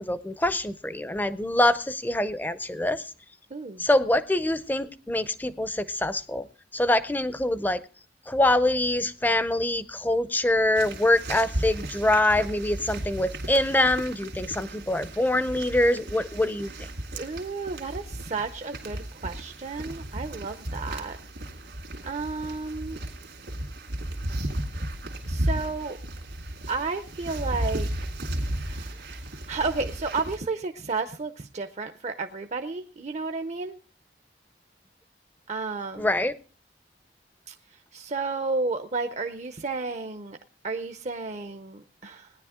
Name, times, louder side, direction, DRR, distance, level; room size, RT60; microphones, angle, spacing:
voice 1, 0.0-3.0 3.8-6.5 6.7-7.8 8.3-16.7 36.0-36.3, left 1 dB, 10° left, 14 dB, 0.5 m, -24 dB
voice 2, 3.5-3.9 17.1-21.2 22.0-23.0 25.3-26.0 26.7-27.9 28.6-33.8 35.5-36.1 37.5-40.4 40.6-42.3, right 3 dB, 40° right, 7 dB, 0.6 m, -32 dB
sound 1, 10.7-30.4, right 1 dB, 80° right, 2.3 m, -34 dB
18.0 x 10.0 x 3.6 m, 0.36 s
head